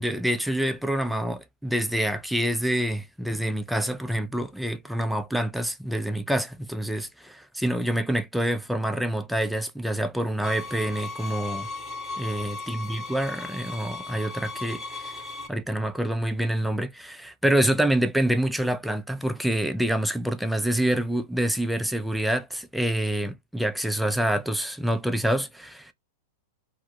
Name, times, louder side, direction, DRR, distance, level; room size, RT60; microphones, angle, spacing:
voice 1, 0.0-11.7 12.2-15.2 15.5-25.9, right 1 dB, ahead, 0.4 m, -27 dB
sound 1, 10.4-15.5, left 3 dB, 15° left, 1.0 m, -36 dB
2.4 x 2.1 x 2.9 m
hypercardioid pair, 105°, 0 cm